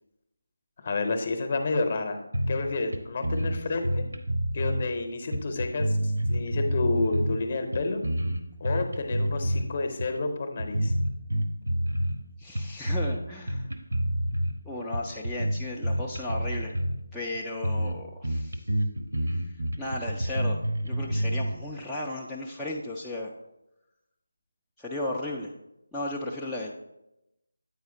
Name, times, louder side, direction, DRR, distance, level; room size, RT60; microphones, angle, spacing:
voice 1, 0.8-2.2 2.5-4.1 4.5-6.0 6.3-8.0 8.6-10.9, left 3 dB, 35° left, 6 dB, 0.8 m, -29 dB
sound 1, 2.3-2.7 2.9-3.0 3.2-4.9 5.3-7.4 7.7-9.7 10.0-10.2 10.6-12.2 12.6-13.2 13.5-14.5 14.9-17.0 17.3-17.4 17.6-18.0 18.2-21.5, equal, 65° right, 1.0 m, -28 dB
voice 2, 12.4-13.7 14.7-16.8 17.1-18.6 19.3-19.5 19.8-23.3 24.8-25.5 25.9-26.7, left 1 dB, ahead, -7 dB, 0.3 m, -35 dB
8.4 x 4.7 x 3.9 m, 0.89 s
figure-of-eight pair, 160°, 0 cm